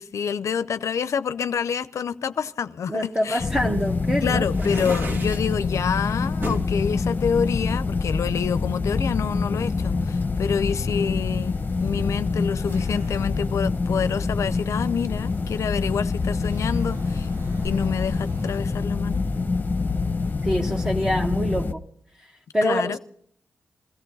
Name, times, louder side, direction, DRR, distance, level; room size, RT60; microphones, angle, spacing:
voice 1, 0.0-3.4 4.2-17.3 17.6-19.2 22.6-23.0, left 7 dB, 75° left, 0.5 m, -27 dB
voice 2, 2.9-5.2 20.4-21.8 22.5-23.0, equal, 15° right, 1.5 m, -26 dB
sound 1, 3.4-21.7, left 4 dB, 35° left, 1.0 m, -26 dB
sound 2, 4.5-5.6 6.4-6.7 7.3-8.4, right 1 dB, 45° right, 2.5 m, -33 dB
sound 3, 11.4-13.5 13.9-18.6, right 2 dB, 90° right, 7.4 m, -51 dB
22.0 x 14.5 x 4.0 m
cardioid pair, 70°, 5 cm